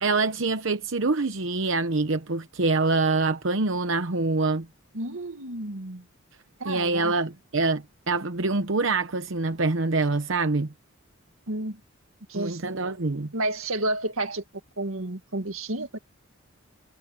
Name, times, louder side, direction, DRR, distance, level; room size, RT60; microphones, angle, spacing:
voice 1, 0.0-4.7 6.6-10.7 12.3-13.3, right 3 dB, 65° right, 1.0 m, -25 dB
voice 2, 4.9-6.0 6.6-7.1 11.5-11.8 12.3-12.8 13.3-14.4 14.8-16.0, right 2 dB, 85° right, 2.1 m, -31 dB
head